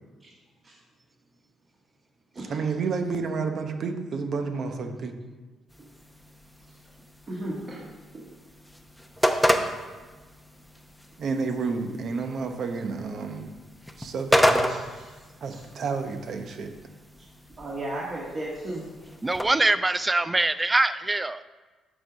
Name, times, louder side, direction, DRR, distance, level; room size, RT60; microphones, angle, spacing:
voice 1, 2.5-5.1 11.2-13.5 14.0-14.6 15.4-16.7, right 4 dB, 60° right, 6 dB, 0.9 m, -30 dB
sound 1, 5.7-19.4, equal, ahead, 0.7 m, -31 dB
voice 2, 7.3-7.9 8.1-8.3 14.7-15.2 15.5-15.6 17.6-18.9, right 1 dB, 40° right, -6 dB, 1.7 m, -35 dB
voice 3, 19.2-21.4, right 2 dB, 20° right, 13 dB, 0.3 m, -23 dB
8.2 x 3.8 x 6.2 m, 1.3 s
cardioid pair, 90°, 0 cm